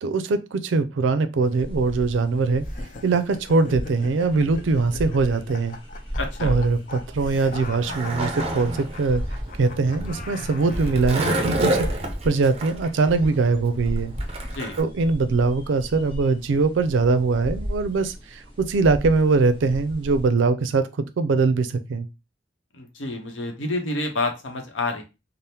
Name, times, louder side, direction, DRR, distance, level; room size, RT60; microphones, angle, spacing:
voice 1, 0.0-2.6 3.0-5.8 6.4-9.2 9.6-14.1 14.8-22.1, right 4 dB, 85° right, 11 dB, 0.4 m, -22 dB
sound 1, 1.5-20.3, equal, 30° left, 1.1 m, -35 dB
sound 2, 2.6-11.1, left 4 dB, 45° left, 0.4 m, -41 dB
voice 2, 6.2-6.6 14.5-14.8 22.7-25.0, left 2 dB, 90° left, 4 dB, 0.8 m, -28 dB
Skateboard, 7.3-14.8, right 2 dB, 30° right, 0.5 m, -29 dB
3.4 x 2.0 x 2.7 m, 0.26 s
head